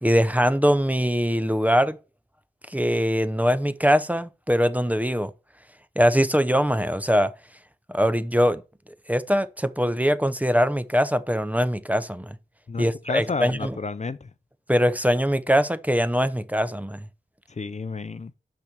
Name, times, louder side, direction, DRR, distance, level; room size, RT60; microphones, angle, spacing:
voice 1, 0.0-2.0 2.7-5.3 6.0-7.3 7.9-8.6 9.1-12.4 12.8-13.8 14.7-17.0, equal, 10° right, 0.7 m, -22 dB
voice 2, 12.7-14.3 17.5-18.3, left 4 dB, 40° left, 0.6 m, -31 dB
6.0 x 5.7 x 6.8 m
cardioid pair, 45°, 19 cm